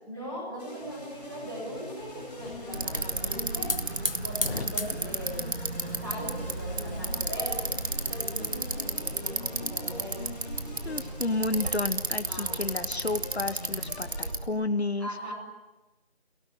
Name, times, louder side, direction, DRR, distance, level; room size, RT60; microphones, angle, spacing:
voice 1, 0.0-3.7 4.2-10.3 12.3-12.7 15.0-15.3, equal, 20° right, -3 dB, 7.4 m, -40 dB
sound 1, 0.6-14.3, left 2 dB, 5° left, 4.0 m, -43 dB
Hiss / Fire, 2.0-8.9, left 3 dB, 60° left, 1.1 m, -39 dB
Bicycle, 2.7-14.5, right 3 dB, 75° right, 2.0 m, -33 dB
voice 2, 10.9-15.1, left 2 dB, 80° left, 9 dB, 1.7 m, -31 dB
25.0 x 18.0 x 9.3 m, 1.1 s
figure-of-eight pair, 180°, 32 cm